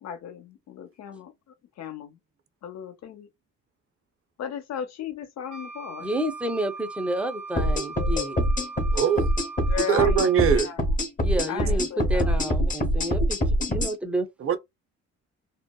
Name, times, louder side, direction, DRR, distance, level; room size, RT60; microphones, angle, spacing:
voice 1, 0.0-1.3 1.8-2.2 2.6-3.3 4.4-6.1 9.7-10.9 11.5-12.4, left 8 dB, 60° left, 0.7 m, -36 dB
Wind instrument woodwind instrument, 5.5-10.6, right 4 dB, 75° right, 0.8 m, -40 dB
voice 2, 6.0-8.4 11.2-13.4 13.7-14.3, right 1 dB, 5° right, 0.5 m, -30 dB
sound 1, 7.6-13.9, equal, 25° left, 0.8 m, -24 dB
voice 3, 8.9-9.3 9.9-10.7 14.4-14.6, right 7 dB, 45° right, 0.5 m, -21 dB
2.7 x 2.0 x 2.2 m
cardioid pair, 90°, 30 cm